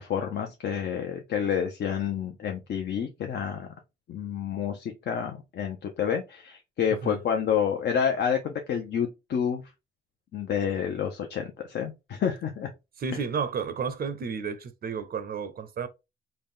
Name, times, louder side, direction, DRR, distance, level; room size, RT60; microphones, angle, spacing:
voice 1, 0.0-3.7 4.1-9.6 10.3-12.7, left 8 dB, 60° left, 0.6 m, -29 dB
voice 2, 13.0-15.9, right 6 dB, 50° right, 0.5 m, -32 dB
3.8 x 2.2 x 3.5 m
cardioid pair, 105°, 19 cm